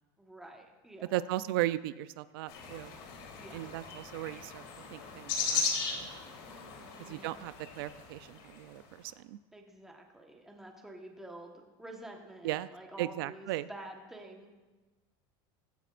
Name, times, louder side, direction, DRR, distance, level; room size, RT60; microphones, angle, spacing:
voice 1, 0.2-1.2 3.3-3.6 6.4-7.3 9.5-14.5, right 1 dB, 5° right, 1 dB, 1.3 m, -49 dB
voice 2, 1.1-2.9 3.5-4.6 4.9-6.1 7.0-9.4 12.4-12.7 13.0-13.7, right 15 dB, 80° right, 14 dB, 0.4 m, -36 dB
sound 1, 2.5-8.7, left 5 dB, 75° left, 3.5 m, -37 dB
17.5 x 16.0 x 2.5 m, 1.2 s
cardioid pair, 175°, 12 cm